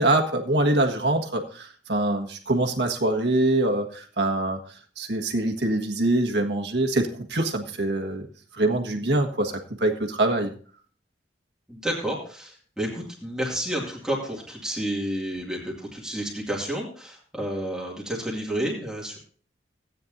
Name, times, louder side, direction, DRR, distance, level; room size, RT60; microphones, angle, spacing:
voice 1, 0.0-4.6 5.0-8.3 8.5-10.5, right 2 dB, 70° right, 4 dB, 1.6 m, -24 dB
voice 2, 11.7-19.2, right 1 dB, 5° right, -3 dB, 2.3 m, -30 dB
16.0 x 9.3 x 2.7 m, 0.44 s
head